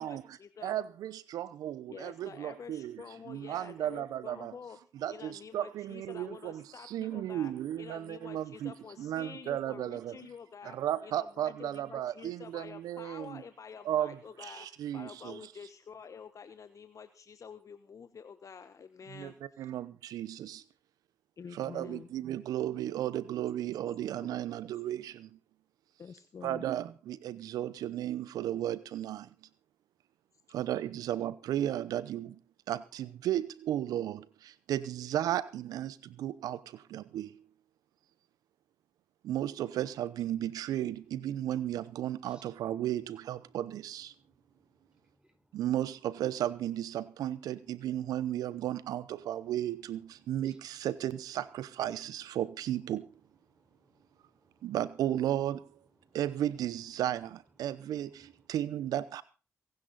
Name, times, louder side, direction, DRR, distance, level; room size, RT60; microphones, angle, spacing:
voice 1, 0.0-0.7 1.9-4.8 5.1-7.5 7.8-10.8 11.0-19.7 21.4-22.1 26.0-26.6, left 6 dB, 60° left, 1.1 m, -48 dB
voice 2, 0.6-3.0 3.3-4.5 5.0-6.5 6.9-8.7 9.0-10.1 10.8-13.4 13.9-14.1 14.6-15.4 19.2-19.3 19.6-20.6 21.6-25.1 26.4-29.2 30.5-32.3 32.7-34.2 34.7-35.9 36.2-36.6 36.9-37.3 39.3-44.1 45.5-50.0 50.3-53.0 54.6-55.6 56.1-57.3 57.6-58.1 58.5-59.2, right 12 dB, 85° right, 0.8 m, -34 dB
voice 3, 44.6-45.6 50.4-50.6 53.5-54.7 56.0-56.2 58.2-58.3, right 1 dB, 15° right, 5.0 m, -68 dB
23.0 x 10.5 x 4.1 m
supercardioid pair, 40°, 6 cm